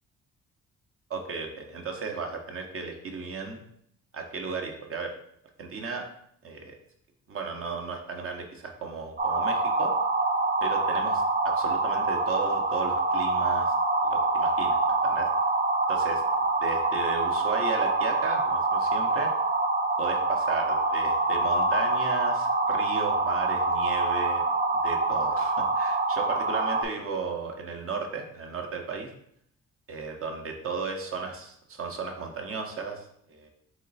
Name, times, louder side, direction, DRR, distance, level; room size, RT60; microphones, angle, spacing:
voice 1, 1.1-3.6 4.1-5.1 5.6-6.0 6.4-6.8 7.3-9.9 10.6-13.7 14.0-15.3 15.9-16.2 16.6-19.3 20.0-24.4 24.8-29.1 29.9-33.5, right 4 dB, 45° right, 3 dB, 0.9 m, -35 dB
sound 1, 9.2-26.8, right 3 dB, 30° right, 0.5 m, -25 dB
3.7 x 3.1 x 4.0 m, 0.70 s
cardioid pair, 90°, 30 cm